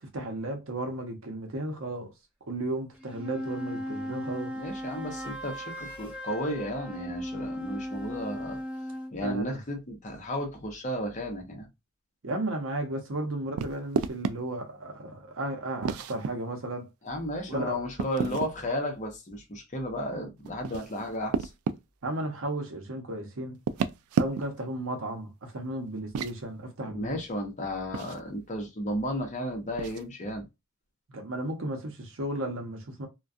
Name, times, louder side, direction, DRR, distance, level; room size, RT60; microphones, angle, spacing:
voice 1, 0.0-2.1 2.5-4.5 9.2-9.6 12.2-16.9 17.5-17.8 22.0-23.6 24.1-27.2 31.1-33.1, right 1 dB, 65° right, 0.7 m, -34 dB
sound 1, 2.9-9.1, equal, 5° right, 0.7 m, -37 dB
voice 2, 4.6-8.6 9.1-11.7 17.1-21.5 26.9-30.5, equal, 35° left, 0.8 m, -33 dB
sound 2, 13.6-14.4 15.8-16.3 18.0-18.5 20.4-21.8 23.5-24.6 26.0-26.4 27.9-28.2 29.8-30.0, right 6 dB, 80° right, 0.3 m, -31 dB
2.3 x 2.2 x 2.5 m
head